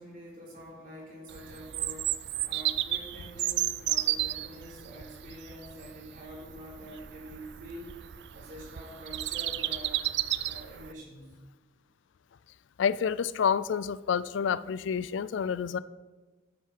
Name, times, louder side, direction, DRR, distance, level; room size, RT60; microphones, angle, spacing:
voice 1, 0.0-2.1 2.4-7.9 8.3-10.1 10.4-11.3, equal, 45° right, -4 dB, 3.6 m, -46 dB
Bird vocalization bird call bird song, 1.3-10.9, right 14 dB, 65° right, 0.4 m, -33 dB
voice 2, 12.8-15.8, left 7 dB, 80° left, 18 dB, 0.4 m, -28 dB
9.5 x 9.1 x 4.7 m, 1.3 s
head